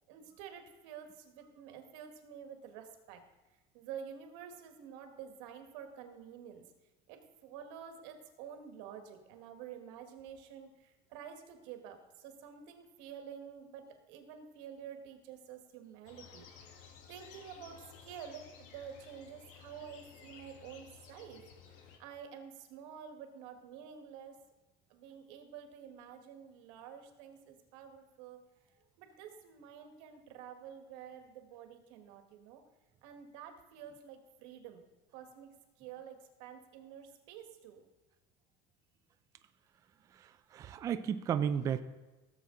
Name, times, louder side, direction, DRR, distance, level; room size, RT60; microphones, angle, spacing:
voice 1, 0.1-3.2 3.7-6.6 7.1-16.5 17.1-21.4 22.0-24.4 24.9-28.4 29.0-32.6 33.0-34.8 35.1-37.8, right 8 dB, 90° right, 5 dB, 1.5 m, -49 dB
sound 1, 16.1-22.0, left 6 dB, 60° left, 1.5 m, -55 dB
voice 2, 40.1-41.8, right 8 dB, 25° right, 9 dB, 0.3 m, -34 dB
16.5 x 7.1 x 3.8 m, 1.1 s
cardioid pair, 170°, 15 cm